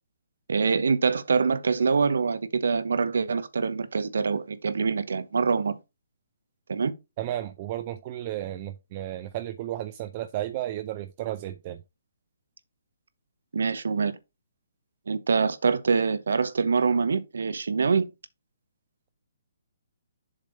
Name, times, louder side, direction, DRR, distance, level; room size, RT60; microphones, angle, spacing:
voice 1, 0.5-5.7 6.7-6.9 13.5-14.1 15.1-18.0, right 5 dB, 80° right, 0.9 m, -25 dB
voice 2, 7.2-11.8, right 13 dB, 35° right, 0.5 m, -33 dB
7.4 x 3.4 x 5.5 m
hypercardioid pair, 155°, 0 cm